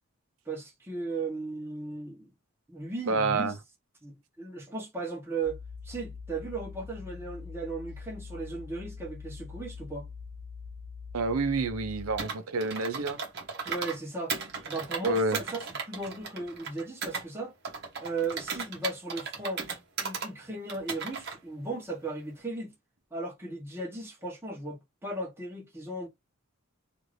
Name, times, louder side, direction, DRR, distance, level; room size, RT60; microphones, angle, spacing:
voice 1, 0.5-2.3 2.7-3.6 4.0-5.6 5.8-10.1 13.6-14.3 14.6-17.5 18.0-19.6 20.0-22.7 23.1-26.1, right 3 dB, 10° right, 0.9 m, -36 dB
voice 2, 3.1-3.6 11.1-13.2 15.0-15.4, right 3 dB, 80° right, 0.6 m, -28 dB
sound 1, 5.4-12.2, left 5 dB, 80° left, 0.5 m, -43 dB
Computer keyboard, 12.2-14.0 14.3-17.2 17.6-20.3 20.7-21.4, right 5 dB, 50° right, 0.9 m, -36 dB
2.6 x 2.5 x 3.2 m
head